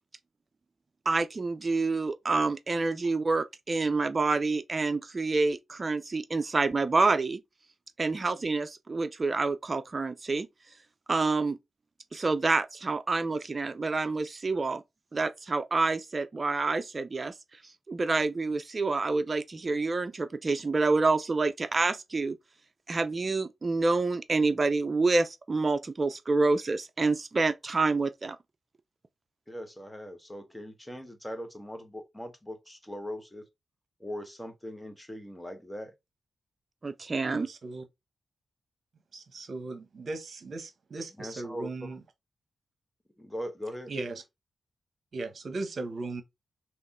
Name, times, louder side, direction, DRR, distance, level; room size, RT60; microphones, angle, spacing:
voice 1, 1.1-7.4 8.0-10.5 11.1-11.6 12.1-14.8 15.1-17.3 17.9-22.4 22.9-28.4 36.8-37.5, right 3 dB, 40° right, 0.5 m, -27 dB
voice 2, 29.5-33.4 34.0-35.9 41.2-41.9 43.2-43.9, equal, 10° left, 1.3 m, -40 dB
voice 3, 37.3-37.8 39.1-42.0 43.9-44.2 45.1-46.2, right 3 dB, 60° right, 1.1 m, -37 dB
3.6 x 3.0 x 4.2 m
supercardioid pair, 50°, 0 cm